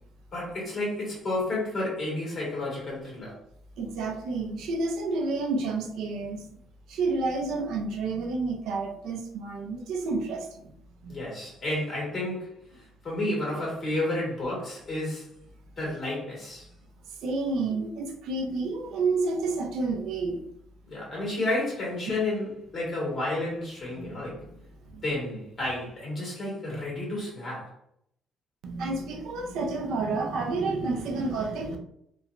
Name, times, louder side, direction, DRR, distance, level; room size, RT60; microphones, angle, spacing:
voice 1, 0.3-3.4 11.1-12.5 13.0-15.3 15.8-16.7 20.9-24.4 25.0-27.7, left 2 dB, 30° left, -4 dB, 1.5 m, -31 dB
voice 2, 3.8-6.5 6.9-10.7 11.0-11.1 17.2-20.4 24.0-24.5 24.9-25.0 28.6-31.8, right 3 dB, 75° right, 3 dB, 0.4 m, -30 dB
2.9 x 2.3 x 2.4 m, 0.73 s
cardioid pair, 145°, 0 cm